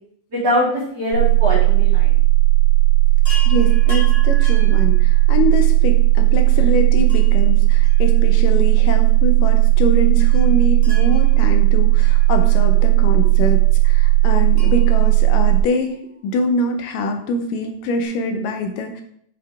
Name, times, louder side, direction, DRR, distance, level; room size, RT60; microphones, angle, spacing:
voice 1, 0.3-2.1 6.5-6.7, equal, 35° right, -7 dB, 2.5 m, -22 dB
sound 1, 1.1-15.6, right 18 dB, 75° right, 1.9 m, -15 dB
Chime, 3.2-5.7 7.1-8.6 8.9-9.0 10.2-12.9 14.5-16.2 17.7-17.8 18.0-18.1, left 1 dB, 15° left, 2.1 m, -38 dB
voice 2, 3.5-19.0, left 2 dB, 80° left, 5 dB, 2.3 m, -24 dB
8.0 x 4.8 x 3.5 m, 0.66 s
omnidirectional pair, 3.9 m